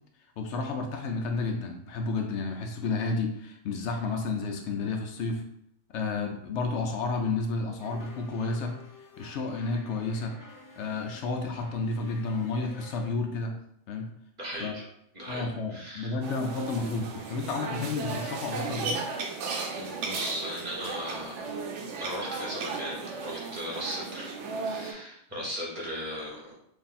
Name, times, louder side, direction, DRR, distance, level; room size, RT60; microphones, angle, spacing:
voice 1, 0.4-5.4 5.9-8.8 9.2-10.3 10.8-13.6 13.9-14.1 14.6-14.7 15.3-19.1, left 3 dB, 75° left, 4 dB, 0.8 m, -31 dB
sound 1, 7.8-13.1, left 3 dB, 30° left, 0.4 m, -51 dB
voice 2, 14.4-14.9 15.1-16.2 19.8-21.4 22.0-26.5, equal, 35° right, -4 dB, 1.1 m, -37 dB
sound 2, 16.2-24.9, right 4 dB, 80° right, 0.9 m, -35 dB
3.3 x 2.6 x 4.0 m, 0.73 s
omnidirectional pair, 1.2 m